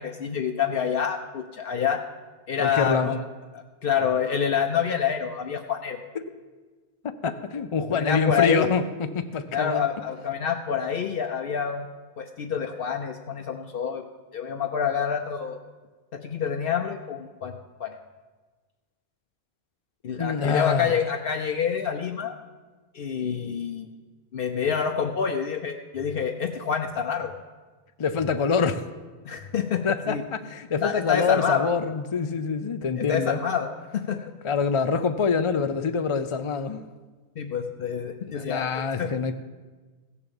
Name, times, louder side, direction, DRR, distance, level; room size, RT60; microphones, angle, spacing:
voice 1, 0.0-2.0 2.5-3.2 3.5-6.0 7.9-8.7 9.5-11.9 12.2-14.0 14.3-15.6 16.1-17.9 20.0-22.3 22.9-23.9 24.3-27.3 29.2-30.2 30.8-31.7 33.0-34.2 37.4-38.7 39.0-39.1, left 7 dB, 65° left, 5 dB, 0.9 m, -27 dB
voice 2, 2.6-3.1 7.0-9.8 20.2-20.9 28.0-28.8 29.8-33.4 34.4-36.9 38.2-39.3, left 5 dB, 40° left, 9 dB, 0.4 m, -25 dB
15.5 x 7.0 x 7.1 m, 1.3 s
omnidirectional pair, 1.1 m